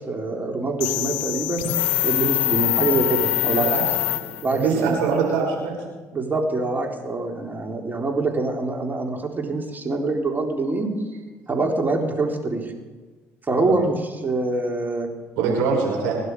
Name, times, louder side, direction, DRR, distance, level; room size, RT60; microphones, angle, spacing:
voice 1, 0.0-1.7 2.0-3.7 4.4-5.0 6.1-10.9 11.5-12.7 13.5-15.1, right 3 dB, 30° right, 1 dB, 3.9 m, -25 dB
sound 1, 0.8-4.7, left 17 dB, 90° left, 0.4 m, -24 dB
voice 2, 3.5-3.8 4.5-5.7 13.6-13.7 15.4-16.2, right 5 dB, 85° right, -1 dB, 5.8 m, -23 dB
25.0 x 11.0 x 4.9 m, 1.3 s
hypercardioid pair, 60°, 7 cm